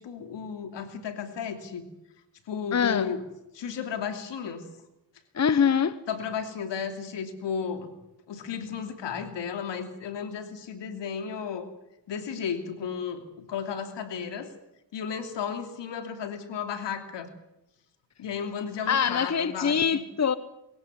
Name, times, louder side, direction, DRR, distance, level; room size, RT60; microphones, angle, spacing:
voice 1, 0.0-1.9 2.5-3.2 3.5-4.7 6.1-7.9 8.3-11.7 12.1-14.5 14.9-17.3 18.2-20.0, left 7 dB, 80° left, 3.0 m, -34 dB
voice 2, 2.7-3.1 5.3-6.0 18.9-20.3, left 7 dB, 40° left, 1.1 m, -24 dB
21.5 x 16.5 x 9.7 m
cardioid pair, 65°, 42 cm